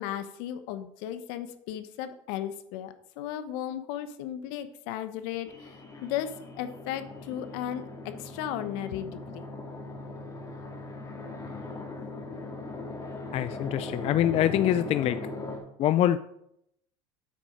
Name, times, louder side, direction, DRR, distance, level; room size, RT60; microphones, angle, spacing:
voice 1, 0.0-5.7 6.0-9.4, left 11 dB, 70° left, 11 dB, 0.9 m, -35 dB
sound 1, 5.5-15.6, left 2 dB, 20° left, 2.0 m, -39 dB
voice 2, 13.3-15.2 15.8-16.2, left 12 dB, 40° left, 13 dB, 0.4 m, -24 dB
8.4 x 6.2 x 5.0 m, 0.76 s
hypercardioid pair, 85°, 16 cm